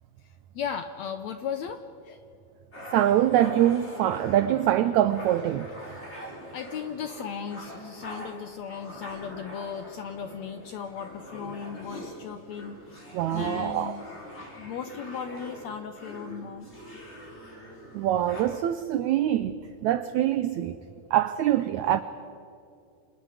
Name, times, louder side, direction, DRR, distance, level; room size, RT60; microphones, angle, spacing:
voice 1, 0.5-2.2 6.2-12.8 13.3-14.0 14.6-16.7, left 7 dB, 75° left, 1.7 m, -36 dB
sound 1, 2.7-18.4, equal, 15° left, 5.1 m, -43 dB
voice 2, 2.9-5.7 13.1-14.0 17.9-20.8 21.1-22.0, right 12 dB, 90° right, 1.6 m, -24 dB
30.0 x 27.0 x 5.0 m
omnidirectional pair, 4.2 m